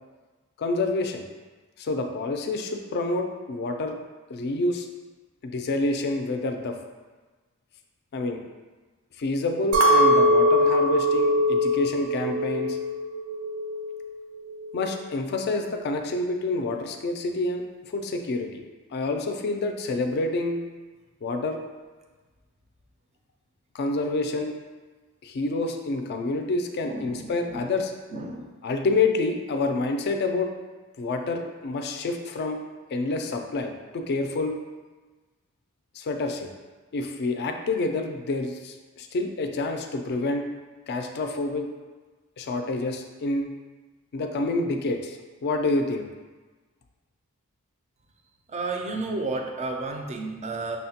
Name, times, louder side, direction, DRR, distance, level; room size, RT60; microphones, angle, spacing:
voice 1, 0.6-1.2 1.8-4.0 4.3-4.9 5.4-6.8 8.1-8.4 9.2-12.8 14.7-17.6 17.9-18.6 18.9-20.6 21.2-21.6 23.7-24.5 25.2-27.9 28.6-30.5 31.0-32.6 32.9-34.5 35.9-36.5 36.9-40.5 40.9-41.7 42.4-43.5 44.1-46.1, left 2 dB, 50° left, 5 dB, 0.3 m, -28 dB
Chink clink, 9.7-14.1 14.5-15.1, left 1 dB, 75° right, 0.6 m, -22 dB
voice 2, 26.8-27.6 28.1-28.5 48.5-50.8, right 3 dB, 30° right, 3 dB, 0.4 m, -32 dB
5.5 x 2.1 x 2.8 m, 1.3 s
head